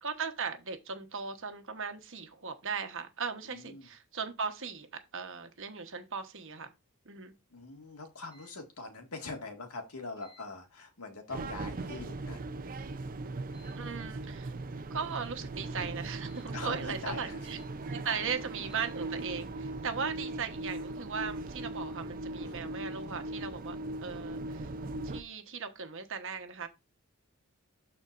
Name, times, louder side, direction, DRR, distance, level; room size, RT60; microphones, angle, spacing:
voice 1, 0.0-6.7 7.0-7.3 13.8-14.5 14.9-17.6 17.9-23.8 24.0-24.7 25.0-26.7, right 6 dB, 60° right, 1.2 m, -38 dB
voice 2, 3.4-3.9 7.5-12.4 16.5-17.4 17.8-18.8 22.4-22.7, left 3 dB, 90° left, 2.0 m, -43 dB
sound 1, 8.2-8.5 10.2-10.5 11.7-12.0 13.5-13.8 15.0-15.4 16.2-16.5 17.4-17.7 18.6-18.9, left 4 dB, 20° left, 4.9 m, -60 dB
sound 2, 11.3-25.2, right 2 dB, 40° right, 0.6 m, -39 dB
12.5 x 4.3 x 2.6 m
head